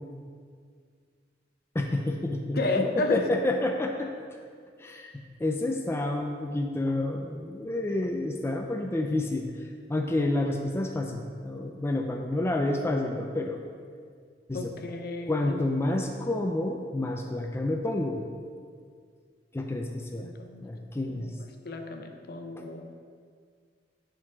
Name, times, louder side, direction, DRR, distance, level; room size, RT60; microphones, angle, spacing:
voice 1, 1.7-4.1 4.8-13.6 14.5-14.7 15.2-18.3 19.5-20.3 20.6-21.3 22.6-22.7, left 2 dB, 15° left, 2 dB, 0.4 m, -29 dB
voice 2, 2.6-3.2 10.3-10.5 14.5-15.9 20.2-20.7 21.1-21.3 21.6-23.0, left 3 dB, 60° left, 5 dB, 0.6 m, -32 dB
9.8 x 3.9 x 4.7 m, 2.1 s
head